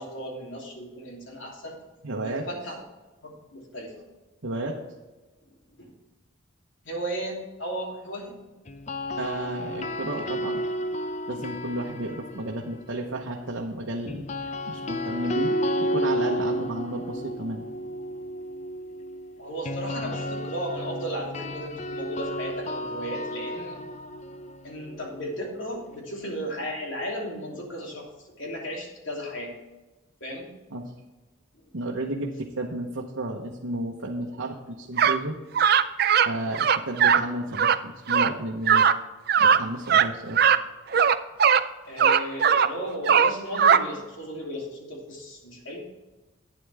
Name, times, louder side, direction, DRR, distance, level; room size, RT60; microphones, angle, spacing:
voice 1, 0.0-1.8 2.2-2.8 3.2-3.9 5.8-5.9 6.8-8.4 19.4-23.8 24.6-29.5 30.2-30.5 41.9-45.8, equal, 70° left, -1 dB, 3.0 m, -35 dB
voice 2, 2.0-2.5 4.4-4.8 9.2-10.6 11.3-14.3 14.7-17.6 30.7-30.9 31.7-35.4 36.2-38.9 39.4-40.4, right 1 dB, 80° right, -1 dB, 1.0 m, -32 dB
sound 1, 8.7-12.8 14.1-26.0, equal, 35° left, 0.5 m, -32 dB
sound 2, 35.0-35.2 35.5-36.3 36.5-37.2 37.5-37.8 38.1-38.3 38.7-38.9 39.3-39.6 39.9-40.1 40.3-40.6 40.9-41.6 42.0-42.7 43.1-43.8, right 7 dB, 50° right, 0.4 m, -19 dB
11.5 x 9.2 x 3.5 m, 1.1 s
head